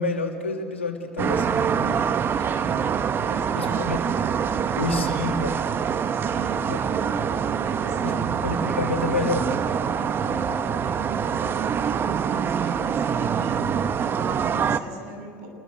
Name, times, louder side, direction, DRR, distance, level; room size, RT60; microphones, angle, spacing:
voice 1, 0.0-2.0 3.6-4.0 4.7-5.6 6.7-6.8 8.0-8.1 8.4-9.5, left 3 dB, 90° left, 2 dB, 2.8 m, -28 dB
sound 1, 1.2-14.8, right 7 dB, 35° right, 1.1 m, -25 dB
voice 2, 2.2-2.9 3.2-3.9 6.1-8.3 9.9-15.5, right 2 dB, 60° right, 3 dB, 7.8 m, -39 dB
28.5 x 21.0 x 8.0 m, 2.4 s
hypercardioid pair, 70°, 6 cm